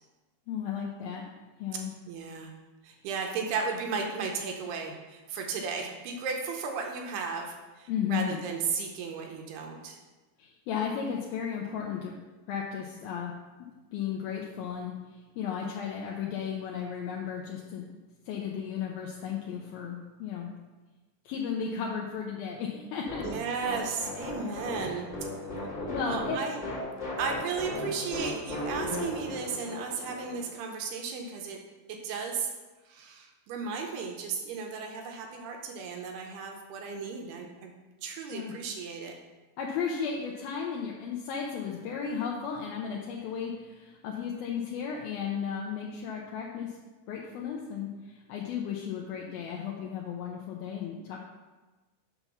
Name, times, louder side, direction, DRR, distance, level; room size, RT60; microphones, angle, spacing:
voice 1, 0.5-1.2 1.6-1.9 7.9-8.4 10.4-12.1 12.5-13.3 13.9-17.9 18.3-20.5 21.3-23.3 25.9-26.4 38.3-38.5 39.6-46.8 47.1-51.2, left 7 dB, 80° left, -1 dB, 2.2 m, -34 dB
voice 2, 2.1-2.5 2.8-10.0 23.2-25.1 25.6-25.7 26.0-26.6 27.2-31.6 31.9-32.5 32.9-37.7 38.0-39.2, right 5 dB, 75° right, 2 dB, 2.7 m, -35 dB
sound 1, 23.1-30.5, left 1 dB, 40° left, 0.9 m, -36 dB
6.8 x 5.7 x 6.0 m, 1.2 s
omnidirectional pair, 5.0 m